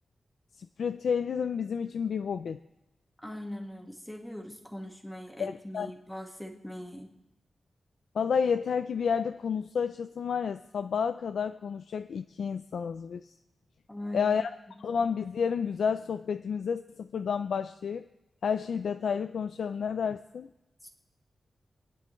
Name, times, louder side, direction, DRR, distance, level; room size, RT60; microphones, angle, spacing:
voice 1, 0.6-2.6 5.4-5.9 8.1-13.3 14.1-14.5 14.8-18.1 18.4-20.5, left 6 dB, 85° left, 9 dB, 0.4 m, -30 dB
voice 2, 3.2-7.1 13.9-14.3 20.8-20.9, left 1 dB, 5° left, 1 dB, 1.7 m, -41 dB
29.0 x 10.0 x 3.2 m, 0.93 s
wide cardioid pair, 140°, 0 cm